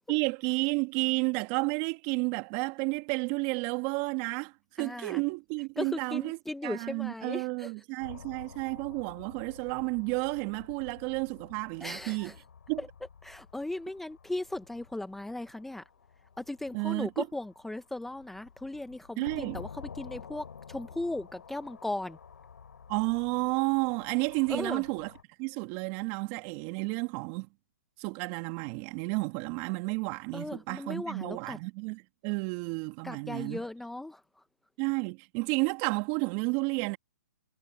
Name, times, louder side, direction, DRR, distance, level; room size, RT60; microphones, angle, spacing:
voice 1, 0.1-4.5 4.8-6.4 6.6-12.3 12.7-12.8 16.7-17.3 19.2-19.6 22.9-25.1 25.4-27.5 28.0-33.6 34.8-37.0, right 29 dB, 30° right, 2.1 m, -31 dB
voice 2, 4.8-5.2 5.8-7.7 11.8-12.4 12.8-12.9 13.2-15.8 16.4-22.2 24.5-24.8 30.3-31.6 33.0-34.4, left 2 dB, ahead, 0.8 m, -37 dB
sound 1, 8.0-25.2, left 6 dB, 75° left, 4.2 m, -51 dB
hypercardioid pair, 145°, 10 cm